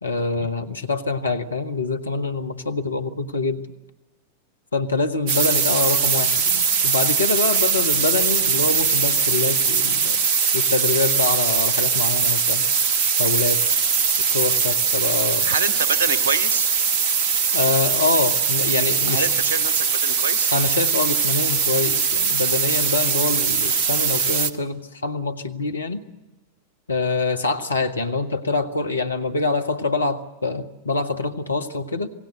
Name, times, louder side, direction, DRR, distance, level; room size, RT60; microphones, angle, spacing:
voice 1, 0.0-3.6 4.7-10.2 10.5-12.6 13.2-13.6 14.1-15.5 17.5-19.4 20.5-26.0 26.9-32.1, left 3 dB, 75° left, 9 dB, 1.4 m, -25 dB
sound 1, 5.3-24.5, right 6 dB, 45° right, 1.2 m, -21 dB
voice 2, 15.4-16.7 19.1-20.5, right 5 dB, 60° right, 10 dB, 1.6 m, -26 dB
27.5 x 18.0 x 7.8 m, 1.1 s
figure-of-eight pair, 90°, 0 cm